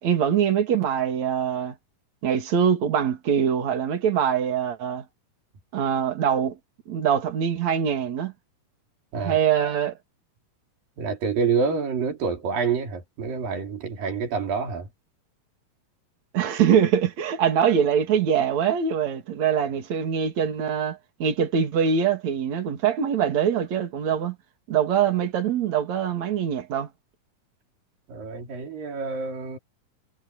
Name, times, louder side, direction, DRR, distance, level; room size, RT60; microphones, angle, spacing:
voice 1, 0.0-1.8 2.2-5.1 5.7-6.6 6.9-8.3 9.2-9.9 16.3-24.4 24.7-26.9, right 8 dB, 55° right, 3.8 m, -23 dB
voice 2, 11.0-14.9 28.1-29.6, right 5 dB, 80° right, 5.2 m, -27 dB
omnidirectional pair, 4.0 m